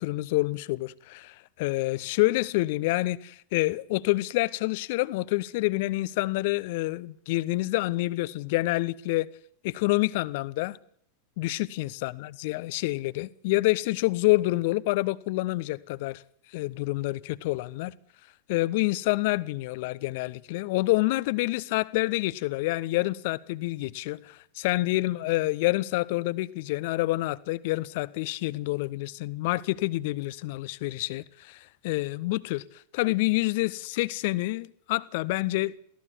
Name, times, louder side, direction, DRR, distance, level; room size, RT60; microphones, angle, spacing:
voice 1, 0.0-9.3 9.6-10.8 11.4-16.2 16.5-17.9 18.5-32.6 32.9-35.7, left 20 dB, 50° left, 1.0 m, -27 dB
23.0 x 16.5 x 9.9 m
figure-of-eight pair, 90°, 0 cm